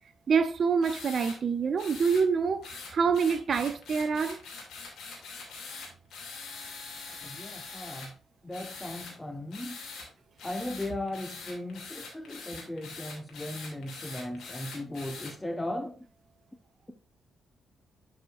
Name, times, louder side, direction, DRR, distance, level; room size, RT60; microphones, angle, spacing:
voice 1, 0.3-4.4, right 5 dB, 55° right, 0.5 m, -26 dB
sound 1, 0.8-1.4 1.8-2.2 2.6-8.1 8.5-9.1 9.5-10.1 10.4-15.3, left 4 dB, 65° left, 2.4 m, -43 dB
voice 2, 7.2-8.1 8.4-9.8 10.4-16.0, left 1 dB, 15° left, 1.0 m, -37 dB
10.0 x 5.0 x 2.4 m
hypercardioid pair, 40°, 0 cm